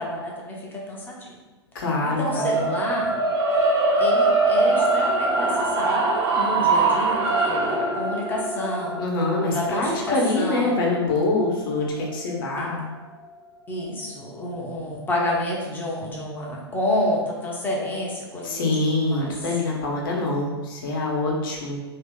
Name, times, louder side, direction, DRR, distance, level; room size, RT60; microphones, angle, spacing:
voice 1, 0.0-1.4 2.0-3.1 4.0-9.0 9.5-10.8 12.6-12.7 13.7-18.7 19.0-19.3, left 1 dB, 15° left, -3 dB, 0.8 m, -29 dB
voice 2, 1.7-2.7 9.0-12.8 18.4-21.8, left 2 dB, 55° left, -1 dB, 1.0 m, -25 dB
sound 1, 2.3-12.5, right 3 dB, 25° right, 0.8 m, -23 dB
2.9 x 2.7 x 3.6 m, 1.2 s
figure-of-eight pair, 100°, 14 cm